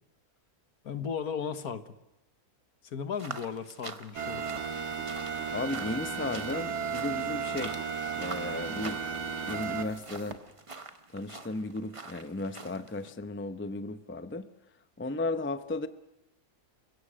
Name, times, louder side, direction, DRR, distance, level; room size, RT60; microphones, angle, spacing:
voice 1, 0.8-1.8 2.8-4.4, left 7 dB, 65° left, 11 dB, 1.7 m, -35 dB
sound 1, 3.1-13.1, right 3 dB, 25° right, 1.0 m, -46 dB
sound 2, 4.1-10.3, right 6 dB, 75° right, 2.1 m, -35 dB
voice 2, 5.5-7.8 8.2-9.0 9.5-10.3 11.1-14.5 15.0-15.9, left 2 dB, 15° left, 11 dB, 0.4 m, -35 dB
29.0 x 16.5 x 6.3 m, 0.93 s
omnidirectional pair, 1.7 m